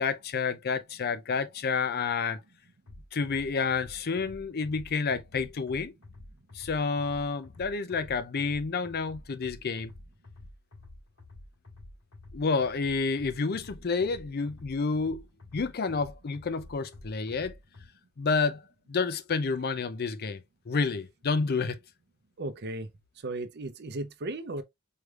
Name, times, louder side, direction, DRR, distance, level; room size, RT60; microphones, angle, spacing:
voice 1, 0.0-2.4 3.1-5.9 6.5-9.9 12.3-15.2 15.5-17.5 18.2-18.6 18.9-20.4 20.7-21.8, left 4 dB, 45° left, 0.5 m, -29 dB
sound 1, 2.9-17.9, left 2 dB, 65° left, 2.0 m, -50 dB
voice 2, 22.4-22.9 23.2-24.6, right 2 dB, 50° right, 0.6 m, -35 dB
4.7 x 3.3 x 2.4 m
head